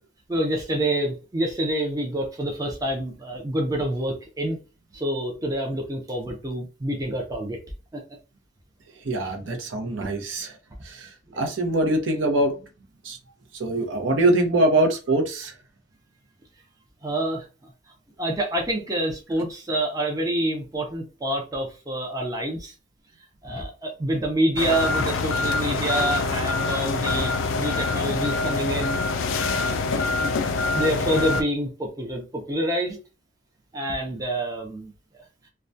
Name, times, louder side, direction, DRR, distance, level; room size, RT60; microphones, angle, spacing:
voice 1, 0.3-4.6 4.9-7.6 7.9-8.0 9.2-9.3 10.0-10.1 11.3-11.5 17.0-17.7 18.2-22.7 23.4-29.0 29.6-29.9 30.2-30.3 30.7-33.0 33.7-34.9, right 1 dB, 20° right, 0.4 m, -27 dB
voice 2, 9.0-10.5 10.8-12.6 13.0-13.2 13.5-15.5, right 2 dB, 70° right, 0.6 m, -23 dB
sound 1, 24.6-31.4, left 3 dB, 75° left, 0.3 m, -25 dB
2.2 x 2.1 x 2.6 m
head